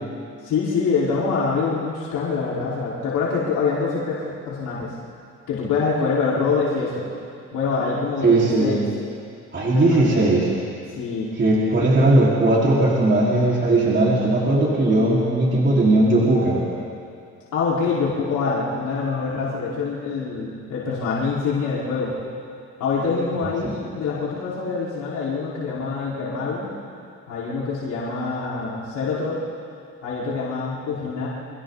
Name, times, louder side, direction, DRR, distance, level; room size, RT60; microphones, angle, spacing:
voice 1, 0.4-5.0 5.5-7.1 7.5-8.8 9.7-10.3 11.0-11.3 17.5-22.2 22.8-26.7 27.3-29.4 30.0-31.3, left 4 dB, 80° left, -8 dB, 5.2 m, -25 dB
voice 2, 8.2-8.8 9.5-10.5 11.4-16.6 23.6-23.7, right 2 dB, 40° right, -6 dB, 5.0 m, -18 dB
29.5 x 26.0 x 4.2 m, 2.4 s
cardioid pair, 90°, 30 cm